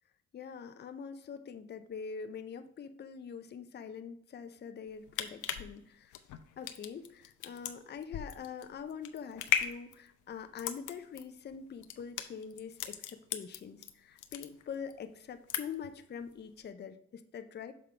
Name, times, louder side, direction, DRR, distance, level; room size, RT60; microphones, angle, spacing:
voice 1, 0.3-6.1 6.6-17.7, left 6 dB, 35° left, 9 dB, 0.5 m, -44 dB
sound 1, 4.9-13.9 14.2-14.9 15.2-15.9 16.3-16.4, left 10 dB, 80° left, 0.6 m, -37 dB
6.8 x 3.7 x 4.3 m, 0.69 s
cardioid pair, 90°, 30 cm